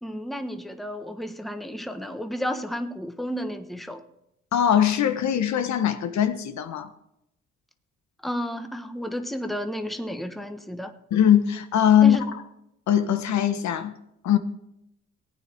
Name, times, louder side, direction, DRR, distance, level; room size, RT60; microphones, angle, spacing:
voice 1, 0.0-4.0 8.2-10.9 12.0-12.3, equal, ahead, 1.2 m, -32 dB
voice 2, 4.5-6.9 11.1-12.2 12.9-13.9 14.2-14.4, left 9 dB, 65° left, 1.1 m, -21 dB
18.0 x 9.3 x 4.5 m
cardioid pair, 90°, 30 cm